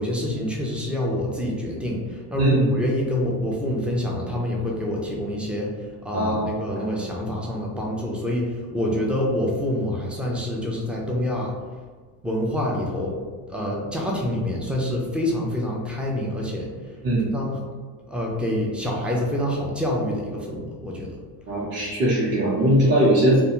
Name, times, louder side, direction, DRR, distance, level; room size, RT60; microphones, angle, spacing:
voice 1, 0.0-5.7 6.0-11.5 12.2-13.2 13.5-16.7 17.3-17.6 18.1-21.1, left 1 dB, 5° right, -2 dB, 0.3 m, -26 dB
voice 2, 2.4-2.7 6.1-6.9 17.0-17.3 21.5-23.4, equal, 25° right, -7 dB, 0.7 m, -20 dB
2.4 x 2.2 x 2.9 m, 1.4 s
supercardioid pair, 95°, 48 cm